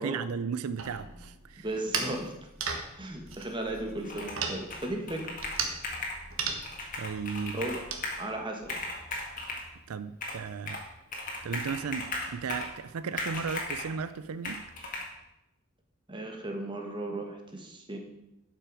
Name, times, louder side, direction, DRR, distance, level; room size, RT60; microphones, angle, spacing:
voice 1, 0.0-1.7 7.0-7.6 9.9-10.8 11.4-14.6, right 6 dB, 90° right, 0.4 m, -35 dB
sound 1, 0.8-8.0, right 5 dB, 65° right, 1.3 m, -37 dB
voice 2, 1.6-2.3 3.0-5.2 7.5-7.8 8.2-8.7 16.1-18.0, right 1 dB, 20° right, 1.4 m, -35 dB
Computer keyboard, 4.0-4.4 4.7-6.2 6.6-8.2 8.6-9.7 10.2-10.9 11.1-12.8 13.2-13.9 14.4-15.0, left 2 dB, 40° left, 1.8 m, -37 dB
11.5 x 6.1 x 4.9 m
head